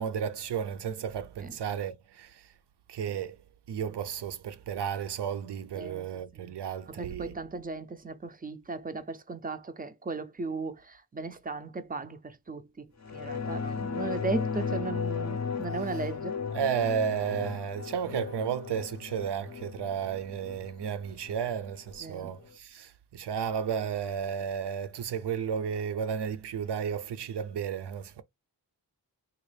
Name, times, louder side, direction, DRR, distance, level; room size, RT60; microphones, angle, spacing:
voice 1, 0.0-2.4 2.9-3.4 3.7-7.4 15.8-16.1 16.5-28.2, right 8 dB, 75° right, 0.5 m, -33 dB
voice 2, 6.9-16.4 22.0-22.3, right 3 dB, 20° right, 0.4 m, -37 dB
sound 1, 13.0-22.0 22.4-22.5, left 5 dB, 40° left, 0.5 m, -35 dB
3.8 x 2.4 x 3.2 m
wide cardioid pair, 135°, 42 cm